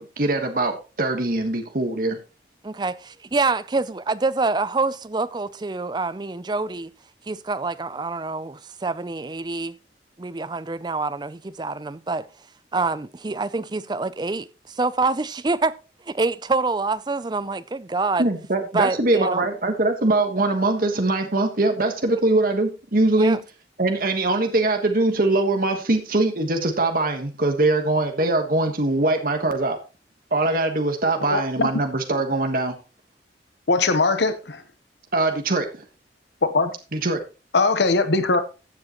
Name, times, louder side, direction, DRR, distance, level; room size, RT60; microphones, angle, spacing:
voice 1, 0.0-2.2 18.2-23.4 23.8-29.8 30.3-32.7 35.1-35.8 36.9-37.2, right 2 dB, 55° right, 1.4 m, -22 dB
voice 2, 2.6-6.9 7.3-9.8 10.2-12.3 12.7-15.8 16.1-18.2 18.7-19.5 23.2-23.4, right 3 dB, 25° right, 0.5 m, -26 dB
voice 3, 31.3-31.7 33.7-34.6 36.4-36.7 37.5-38.4, left 3 dB, 80° left, 1.0 m, -20 dB
15.0 x 7.5 x 3.0 m
head